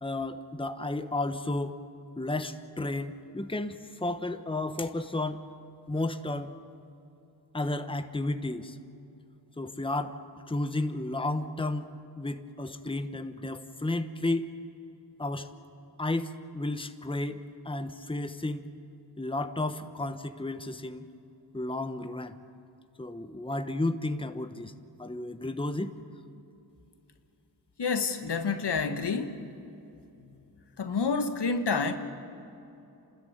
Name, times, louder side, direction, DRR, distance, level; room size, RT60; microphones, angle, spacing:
voice 1, 0.0-1.8 2.2-5.5 5.9-6.5 7.5-8.8 9.6-10.2 10.5-14.5 15.2-15.5 16.0-18.7 19.2-21.1 21.5-22.4 23.0-24.7 25.0-25.9, left 2 dB, 10° left, 9 dB, 1.2 m, -32 dB
voice 2, 27.8-29.4 30.8-31.9, left 4 dB, 70° left, 8 dB, 1.5 m, -28 dB
28.5 x 13.5 x 9.3 m, 2.8 s
cardioid pair, 50°, 42 cm